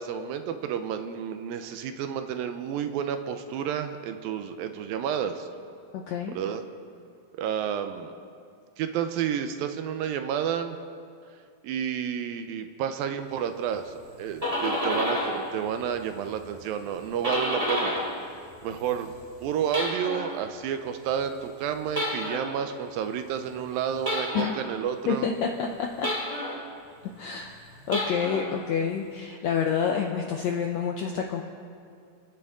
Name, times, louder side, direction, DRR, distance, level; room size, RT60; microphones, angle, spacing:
voice 1, 0.0-5.5 6.4-6.6 7.3-8.1 8.8-10.8 11.6-13.9 14.2-17.9 18.6-19.1 19.4-25.3, right 8 dB, 80° right, 8 dB, 2.5 m, -30 dB
voice 2, 5.9-6.4 24.3-24.5 25.1-26.1 27.2-31.4, left 7 dB, 80° left, 1 dB, 1.6 m, -28 dB
sound 1, 14.1-15.5 15.8-18.2 18.6-20.4 21.9-22.6 24.0-24.7 26.0-26.7 27.8-28.6, left 1 dB, 15° right, 1.7 m, -30 dB
29.5 x 10.5 x 3.7 m, 2.3 s
omnidirectional pair, 4.2 m